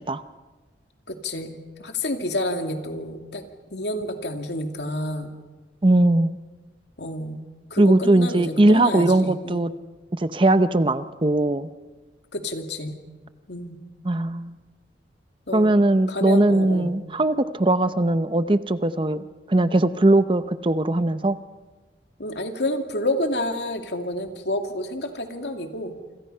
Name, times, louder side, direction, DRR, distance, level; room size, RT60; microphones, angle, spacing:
voice 1, 1.1-3.4 3.7-5.3 7.0-7.4 7.7-9.6 12.3-13.0 13.5-13.8 15.5-17.0 22.2-25.9, left 1 dB, 75° left, 5 dB, 2.5 m, -29 dB
voice 2, 5.8-6.4 7.8-9.7 10.1-11.7 14.0-14.6 15.5-21.4, right 2 dB, 30° right, 12 dB, 0.7 m, -20 dB
27.5 x 26.5 x 5.6 m, 1.3 s
head